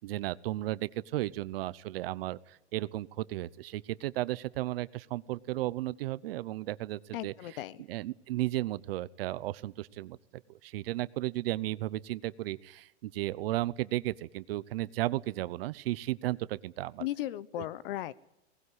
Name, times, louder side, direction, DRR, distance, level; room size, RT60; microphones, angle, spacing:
voice 1, 0.0-10.2 10.5-17.1, right 16 dB, 60° right, 18 dB, 0.9 m, -34 dB
voice 2, 7.1-7.8 17.0-18.1, left 13 dB, 55° left, 19 dB, 1.0 m, -36 dB
19.0 x 18.0 x 9.8 m, 0.85 s
supercardioid pair, 160°, 33 cm